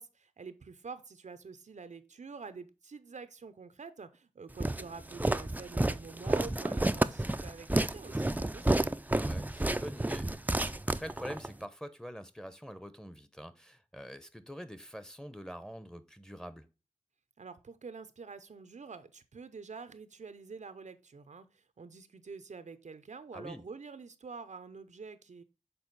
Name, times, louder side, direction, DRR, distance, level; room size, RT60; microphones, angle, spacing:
voice 1, 0.0-9.0 17.4-25.4, right 5 dB, 85° right, 0.6 m, -47 dB
Walk footsteps, 4.6-11.5, right 1 dB, 15° right, 0.4 m, -30 dB
voice 2, 8.5-16.7 23.3-23.6, equal, 5° left, 0.8 m, -46 dB
6.9 x 4.1 x 3.9 m
wide cardioid pair, 55°, 12 cm